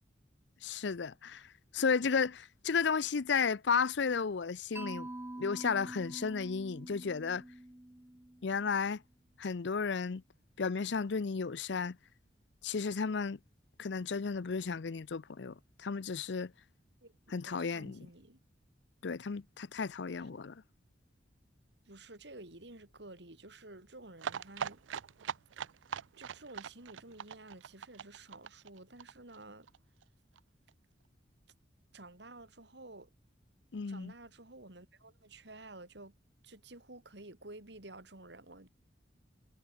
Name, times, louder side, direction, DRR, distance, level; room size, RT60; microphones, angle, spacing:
voice 1, 0.6-5.1 5.4-7.4 8.4-9.0 9.4-10.2 10.6-12.0 12.6-13.4 13.8-16.5 17.3-18.1 19.0-20.6 33.7-34.1, left 5 dB, 70° left, 0.6 m, -33 dB
Mallet percussion, 4.8-8.8, right 1 dB, 10° right, 0.7 m, -46 dB
voice 2, 17.0-18.4 20.1-20.3 21.9-24.8 26.2-29.7 31.9-33.1 33.9-36.1 36.4-38.7, right 2 dB, 65° right, 3.3 m, -52 dB
sound 1, 24.2-29.8 30.0-30.1 30.4-30.5 30.7-30.8, right 7 dB, 85° right, 0.5 m, -41 dB
head